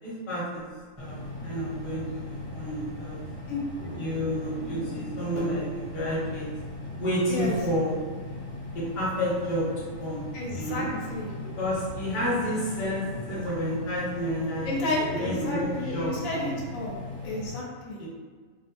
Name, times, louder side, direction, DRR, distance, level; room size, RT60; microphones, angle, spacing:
voice 1, 0.0-0.6 1.0-3.2 3.9-6.5 7.0-8.0 8.7-10.2 10.5-10.9 11.6-16.5 18.0-18.1, equal, 40° left, -7 dB, 0.9 m, -30 dB
sound 1, 1.0-17.5, left 2 dB, 5° left, 0.6 m, -39 dB
sound 2, 1.3-5.7 6.3-6.4 6.8-6.9 7.3-8.0 8.2-8.3 8.5-8.9 9.4-9.6 10.1-11.4 12.3-12.4 12.7-13.7 14.9-16.0, left 1 dB, 65° right, 0.6 m, -40 dB
voice 2, 10.3-11.3 14.6-16.9 17.2-18.0, left 2 dB, 85° left, -3 dB, 1.0 m, -32 dB
2.6 x 2.0 x 2.9 m, 1.5 s
omnidirectional pair, 1.4 m